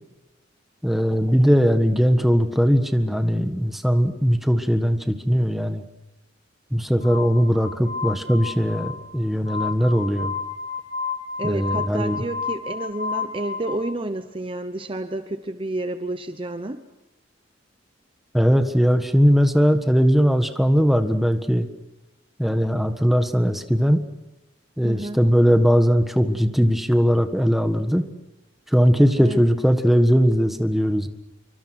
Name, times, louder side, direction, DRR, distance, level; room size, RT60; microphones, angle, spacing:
voice 1, 0.8-5.8 6.7-10.3 11.4-12.2 18.3-21.7 22.4-24.0 24.8-28.0 28.7-31.1, equal, ahead, 7 dB, 1.5 m, -19 dB
Glass, 7.0-13.7, left 5 dB, 40° left, 6.7 m, -31 dB
voice 2, 11.4-16.8 24.8-25.2 29.2-29.4, right 2 dB, 30° right, 9 dB, 0.9 m, -30 dB
27.0 x 24.5 x 6.1 m, 1.0 s
head